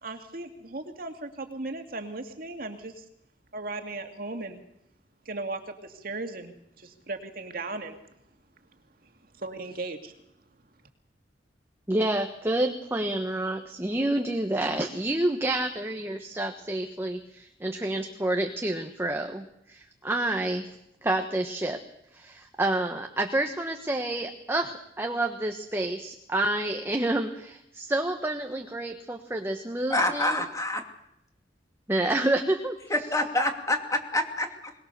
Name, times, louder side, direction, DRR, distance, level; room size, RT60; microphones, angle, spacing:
voice 1, 0.0-3.0 3.5-4.6 5.2-8.0 9.0-10.1, right 2 dB, 55° right, 5 dB, 2.3 m, -37 dB
voice 2, 11.9-20.7 21.0-21.8 22.1-30.4 31.9-32.8, right 1 dB, 15° right, 4 dB, 1.3 m, -29 dB
voice 3, 29.9-30.8 32.9-34.7, left 1 dB, 20° left, 4 dB, 2.7 m, -27 dB
22.0 x 21.0 x 6.8 m, 0.79 s
head